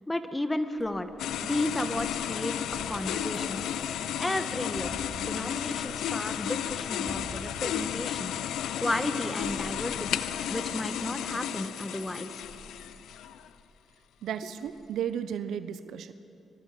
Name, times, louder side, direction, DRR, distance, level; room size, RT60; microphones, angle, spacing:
voice 1, 0.1-1.1 1.4-2.5 2.9-3.6 4.2-8.3 8.8-10.2 10.5-12.4, left 1 dB, 15° left, 9 dB, 1.7 m, -33 dB
sound 1, 0.8-2.0 2.5-9.1 9.4-11.7 12.4-13.9 14.6-15.1, right 3 dB, 45° right, 4.2 m, -50 dB
sound 2, 1.2-13.5, left 10 dB, 80° left, 0.6 m, -33 dB
sound 3, 3.3-8.1, right 1 dB, 20° right, 2.7 m, -53 dB
voice 2, 14.2-16.1, right 8 dB, 75° right, 13 dB, 0.8 m, -34 dB
24.5 x 23.5 x 5.3 m, 2.7 s
supercardioid pair, 45°, 0 cm